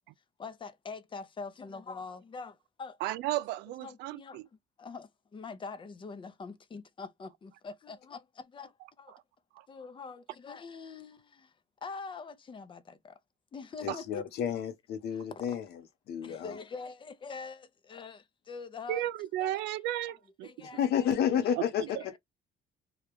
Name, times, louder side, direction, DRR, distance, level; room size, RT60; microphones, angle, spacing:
voice 1, 0.4-3.0 3.7-4.4 4.8-9.1 9.7-11.5 11.8-13.2 13.5-14.3 15.1-15.6 16.2-19.1 19.4-19.7 20.4-21.1 21.9-22.2, left 4 dB, 30° left, 0.6 m, -44 dB
voice 2, 3.0-4.5 9.1-9.2 9.6-9.7 13.9-14.0 18.9-20.5 21.6-21.7, right 14 dB, 85° right, 0.4 m, -34 dB
voice 3, 13.8-15.6 16.1-16.6 20.6-22.2, left 9 dB, 70° left, 0.9 m, -31 dB
3.2 x 2.3 x 3.4 m
cardioid pair, 110°, 17 cm